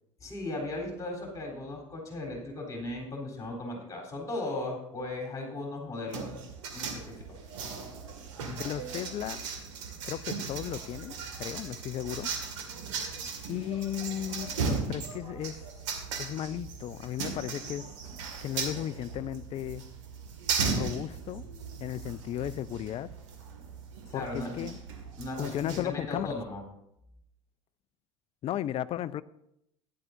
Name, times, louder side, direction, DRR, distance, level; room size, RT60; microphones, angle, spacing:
voice 1, 0.2-6.3 6.7-7.4 24.1-24.7 25.2-26.6, left 2 dB, 20° left, 3.6 m, -37 dB
sound 1, 6.1-25.8, right 5 dB, 70° right, 2.1 m, -37 dB
voice 2, 8.5-9.4 10.1-12.3 13.5-15.7 16.2-18.0 18.4-19.9 20.7-21.5 21.8-23.1 24.1-24.8 25.4-26.3 28.4-29.2, left 12 dB, 35° left, 0.5 m, -35 dB
15.0 x 10.5 x 2.6 m
hypercardioid pair, 75°, 16 cm